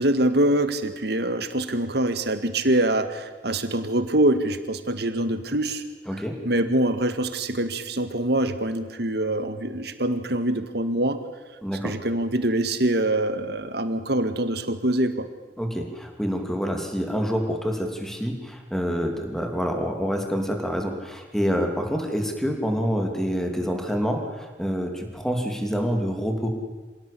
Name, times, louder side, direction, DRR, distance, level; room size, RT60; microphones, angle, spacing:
voice 1, 0.0-5.8 6.4-11.2 11.8-15.3, right 1 dB, 65° right, 9 dB, 1.9 m, -24 dB
voice 2, 6.1-6.4 11.6-11.9 15.6-26.5, equal, 5° left, 3 dB, 3.0 m, -27 dB
26.5 x 17.0 x 8.6 m, 1.3 s
head